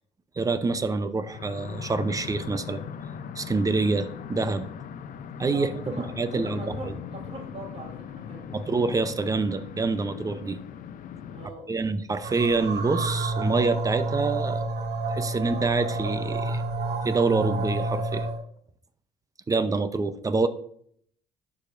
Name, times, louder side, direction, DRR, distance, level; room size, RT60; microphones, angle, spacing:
voice 1, 0.4-2.8 3.4-4.7 5.4-5.7 6.0-7.0 8.5-10.6 11.7-14.6 15.1-16.6 17.0-18.3 19.5-20.5, right 3 dB, 20° right, 11 dB, 0.6 m, -26 dB
sound 1, 1.2-11.5, left 8 dB, 55° left, 0.6 m, -40 dB
voice 2, 5.5-8.5 11.3-11.7, right 2 dB, 40° right, -1 dB, 2.7 m, -40 dB
sound 2, 12.2-18.4, right 2 dB, 75° right, 1.9 m, -29 dB
11.5 x 4.9 x 2.5 m, 0.63 s
cardioid pair, 110°, 17 cm